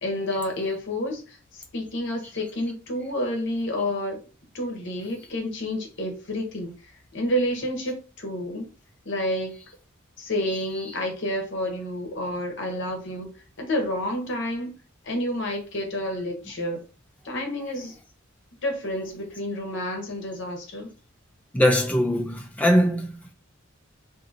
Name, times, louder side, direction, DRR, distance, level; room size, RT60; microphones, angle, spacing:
voice 1, 0.0-4.2 4.5-6.7 7.1-8.7 9.1-9.6 10.2-14.8 15.0-16.8 17.2-18.0 18.6-20.9, left 1 dB, 60° left, 0.8 m, -29 dB
voice 2, 21.5-23.3, equal, 5° left, 0.4 m, -21 dB
2.6 x 2.6 x 2.5 m
head